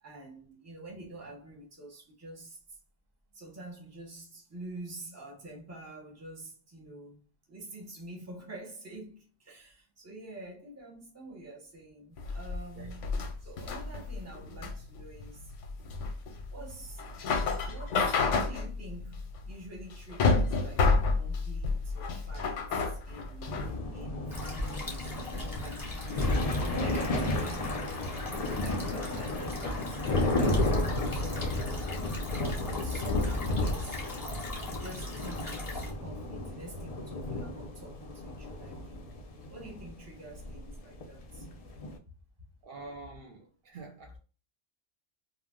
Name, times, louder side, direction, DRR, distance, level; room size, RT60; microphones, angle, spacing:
voice 1, 0.0-2.8 3.3-7.2 7.5-13.1 13.4-15.5 16.5-17.0 17.6-23.6 23.9-31.7 32.2-34.0 34.7-39.2 39.5-41.8, right 1 dB, 15° right, 0.7 m, -47 dB
sound 1, 12.2-23.7, left 4 dB, 90° left, 0.9 m, -30 dB
sound 2, 23.5-42.0, left 2 dB, 70° left, 0.3 m, -33 dB
sound 3, 24.3-35.9, left 2 dB, 20° left, 0.7 m, -40 dB
voice 2, 42.6-44.2, right 3 dB, 65° right, 0.7 m, -46 dB
2.4 x 2.0 x 3.5 m
omnidirectional pair, 1.2 m